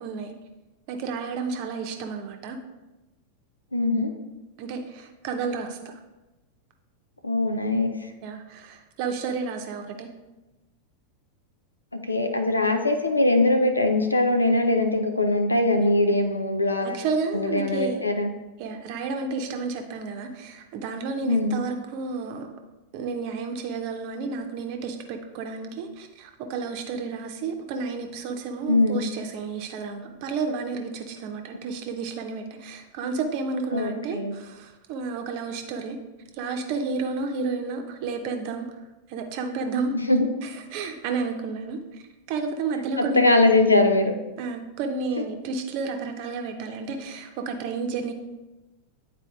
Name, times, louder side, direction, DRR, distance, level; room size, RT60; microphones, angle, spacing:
voice 1, 0.0-0.3 0.9-2.6 4.6-6.0 8.2-10.1 15.7-15.9 16.8-18.0 18.6-22.5 22.9-36.0 36.3-38.7 39.1-39.9 40.4-41.8 42.3-43.6 44.4-48.1, right 4 dB, 45° right, 5 dB, 0.8 m, -31 dB
voice 2, 3.7-4.1 7.2-8.0 11.9-17.0 17.3-18.3 21.2-21.6 28.7-29.1 33.7-34.3 40.1-40.3 43.0-44.2 45.2-45.3, left 2 dB, 80° left, 5 dB, 0.5 m, -22 dB
9.7 x 4.1 x 2.4 m, 1.1 s
figure-of-eight pair, 90°, 0 cm